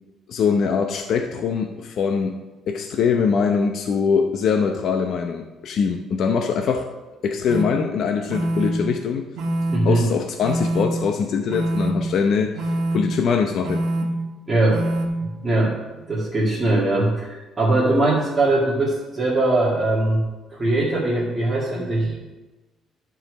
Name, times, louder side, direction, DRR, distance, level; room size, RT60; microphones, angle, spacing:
voice 1, 0.3-2.4 2.7-6.9 7.2-9.3 9.8-12.6 12.9-13.9, left 6 dB, 50° left, 4 dB, 0.7 m, -22 dB
sound 1, 7.5-7.6 8.3-8.7 9.4-9.8 10.4-10.8 11.5-11.9 12.6-13.0 13.6-14.0 14.7-15.1, right 1 dB, 70° right, 1.4 m, -24 dB
voice 2, 9.7-10.0 14.5-14.8 15.2-20.2 20.5-22.3, right 2 dB, 20° right, -8 dB, 2.0 m, -21 dB
12.0 x 4.9 x 6.1 m, 1.2 s
cardioid pair, 155°, 0 cm